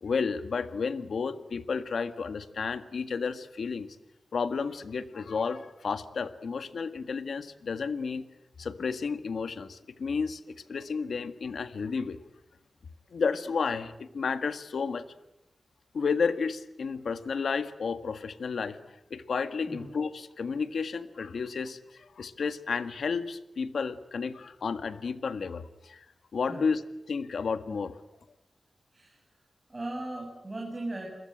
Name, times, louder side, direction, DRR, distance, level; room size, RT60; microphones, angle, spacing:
voice 1, 0.0-3.9 4.3-8.3 8.6-12.2 13.1-15.0 15.9-26.0 26.3-27.9, left 5 dB, 85° left, 11 dB, 1.7 m, -32 dB
voice 2, 29.7-31.1, right 2 dB, 30° right, 0 dB, 7.6 m, -37 dB
29.0 x 22.5 x 9.0 m, 0.84 s
wide cardioid pair, 80°, 0 cm